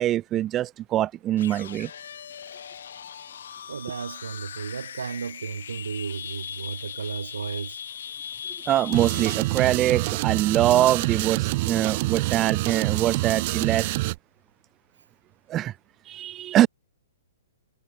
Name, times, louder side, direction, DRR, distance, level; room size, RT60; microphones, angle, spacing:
voice 1, 0.0-1.9 8.7-13.9 15.5-15.7 16.1-16.7, right 13 dB, 25° right, 0.6 m, -23 dB
sound 1, 1.3-9.6, left 8 dB, 65° left, 5.9 m, -39 dB
voice 2, 3.7-7.8, right 6 dB, 75° right, 3.6 m, -34 dB
sound 2, 8.9-14.2, right 21 dB, 45° right, 1.0 m, -26 dB
figure-of-eight pair, 120°, 0 cm